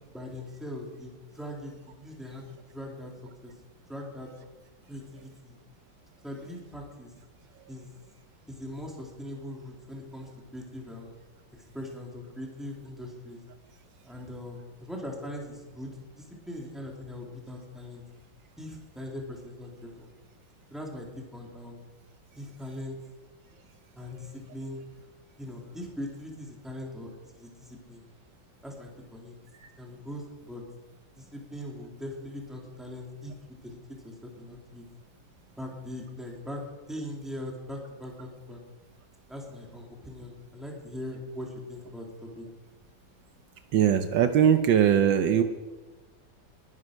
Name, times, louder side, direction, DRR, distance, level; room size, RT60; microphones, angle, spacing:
voice 1, 0.1-3.1 3.4-3.5 3.9-4.3 4.9-5.6 6.2-7.1 7.7-7.9 8.5-11.1 11.5-13.4 14.0-18.0 18.6-20.1 20.7-21.1 21.3-21.8 22.4-23.0 23.9-24.8 25.4-28.0 28.6-29.3 29.8-30.6 31.1-34.8 35.6-36.6 36.9-38.6 39.3-42.5, left 1 dB, ahead, -1 dB, 3.0 m, -41 dB
voice 2, 43.7-45.4, right 9 dB, 75° right, 8 dB, 1.5 m, -21 dB
20.5 x 9.7 x 6.6 m, 1.3 s
omnidirectional pair, 2.1 m